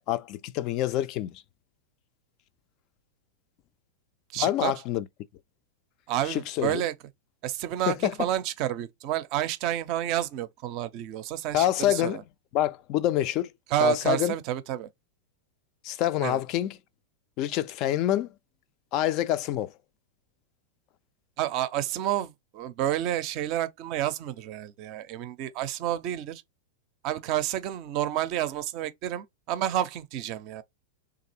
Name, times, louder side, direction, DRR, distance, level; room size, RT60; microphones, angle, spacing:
voice 1, 0.0-1.4 4.4-5.1 6.2-6.8 7.9-8.1 11.5-12.2 12.5-13.5 13.8-14.3 15.8-16.8 17.4-18.3 18.9-19.7, left 12 dB, 45° left, 0.3 m, -26 dB
voice 2, 4.3-4.7 6.1-6.9 7.4-12.2 13.7-14.9 16.2-16.4 21.4-26.4 27.0-30.6, right 12 dB, 45° right, 0.5 m, -30 dB
3.2 x 2.4 x 2.8 m
figure-of-eight pair, 95°, 0 cm